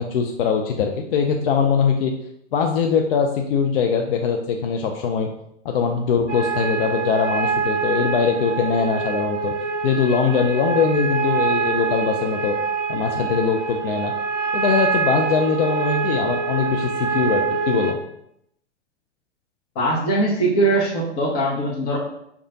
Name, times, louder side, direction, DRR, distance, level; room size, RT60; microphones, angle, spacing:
voice 1, 0.0-2.1 2.5-5.3 5.6-9.5 9.8-12.6 12.9-14.1 14.5-18.0, left 6 dB, 50° left, 3 dB, 0.4 m, -21 dB
sound 1, 6.3-17.9, right 5 dB, 85° right, 0.5 m, -25 dB
voice 2, 19.7-22.0, right 2 dB, 30° left, -3 dB, 0.8 m, -21 dB
4.7 x 2.3 x 2.7 m, 0.75 s
figure-of-eight pair, 110°, 35 cm